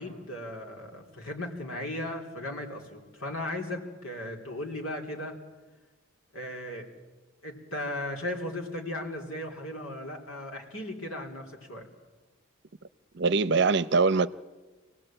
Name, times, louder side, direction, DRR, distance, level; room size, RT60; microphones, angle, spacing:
voice 1, 0.0-5.4 6.3-6.9 7.4-11.9, left 1 dB, 85° left, 3.7 m, -36 dB
voice 2, 13.2-14.3, right 4 dB, 55° right, 0.7 m, -23 dB
26.5 x 18.0 x 8.9 m
head